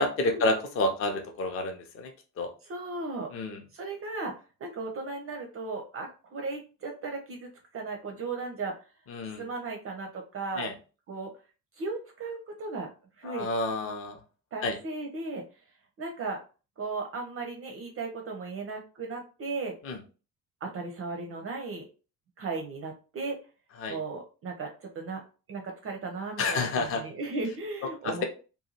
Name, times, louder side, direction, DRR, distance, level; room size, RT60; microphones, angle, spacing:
voice 1, 0.0-2.1 2.4-2.5 3.3-3.6 9.1-9.4 10.6-10.7 13.2-14.2 14.6-14.8 19.8-20.0 23.8-24.0 26.4-27.0 28.0-28.2, left 2 dB, 30° left, 4 dB, 0.6 m, -29 dB
voice 2, 2.6-3.3 3.7-4.3 4.6-8.8 9.3-10.7 11.1-11.3 11.8-12.9 13.2-13.5 14.5-15.4 16.0-16.4 16.8-19.7 20.6-21.9 22.4-23.4 23.9-25.2 25.5-28.2, right 3 dB, 30° right, 2 dB, 0.5 m, -36 dB
2.7 x 2.2 x 2.7 m, 0.35 s
figure-of-eight pair, 45°, 48 cm